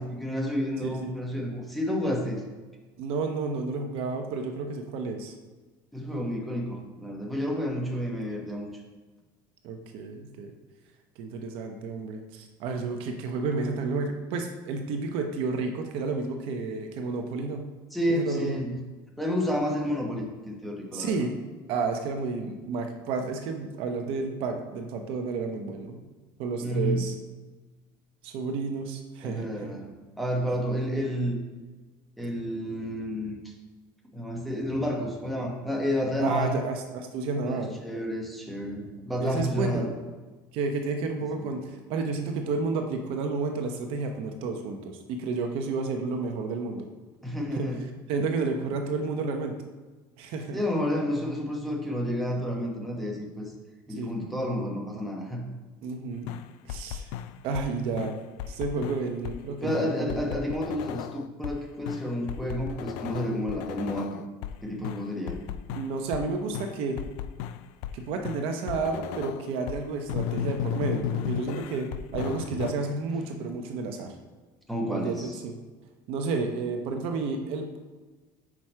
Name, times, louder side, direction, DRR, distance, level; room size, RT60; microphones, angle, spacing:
voice 1, 0.0-2.4 5.9-8.7 17.9-18.7 19.2-21.3 26.6-27.0 29.2-29.9 30.2-31.4 32.2-33.5 34.1-36.6 37.4-39.9 41.3-41.5 47.2-47.8 50.5-53.5 53.9-55.4 59.6-64.2 64.6-65.4 74.7-75.4, equal, ahead, -2 dB, 1.0 m, -30 dB
voice 2, 3.0-5.3 8.0-8.2 9.6-10.5 11.2-17.7 18.1-18.6 20.9-21.3 21.7-26.0 26.4-27.1 28.2-29.7 36.2-37.8 39.2-39.9 40.5-46.9 47.5-47.7 48.1-49.6 50.2-50.6 53.9-54.1 55.8-56.3 56.6-57.1 57.4-58.2 58.5-60.2 65.7-67.0 67.9-74.1 74.9-75.5 76.1-77.8, right 4 dB, 60° right, 4 dB, 0.8 m, -31 dB
sound 1, 56.3-57.7 58.0-59.4 59.7-61.6 61.9-64.6 64.8-66.3 66.5-68.0 68.2-69.8 70.1-72.7, left 10 dB, 70° left, 0.4 m, -35 dB
6.1 x 4.7 x 4.4 m, 1.3 s
cardioid pair, 155°, 11 cm